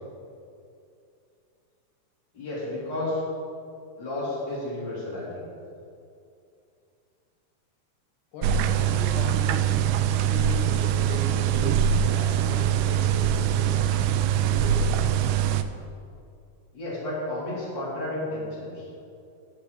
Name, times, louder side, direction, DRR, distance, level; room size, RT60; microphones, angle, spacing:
voice 1, 2.3-3.2 4.0-5.4 16.7-18.9, left 1 dB, 35° left, -7 dB, 3.8 m, -32 dB
voice 2, 8.3-9.7 10.1-11.8 12.1-13.8 14.3-14.9, left 3 dB, 85° left, -1 dB, 3.1 m, -37 dB
sound 1, 8.4-15.6, right 9 dB, 85° right, 2.1 m, -23 dB
15.5 x 6.3 x 5.2 m, 2.5 s
omnidirectional pair, 3.6 m